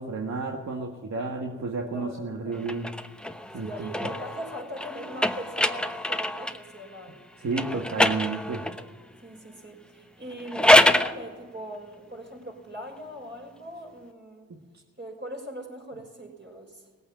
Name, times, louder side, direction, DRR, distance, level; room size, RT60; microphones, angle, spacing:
voice 1, 0.0-2.9 3.5-3.9 7.4-8.7, right 4 dB, 55° right, 1 dB, 1.8 m, -31 dB
voice 2, 1.9-2.7 3.6-7.2 9.2-14.5 15.0-16.9, equal, 35° right, 1 dB, 5.8 m, -40 dB
sound 1, 2.6-6.7 7.5-8.9 10.3-11.2, left 1 dB, 5° left, 0.9 m, -24 dB
18.5 x 8.7 x 8.9 m, 1.5 s
supercardioid pair, 50°, 33 cm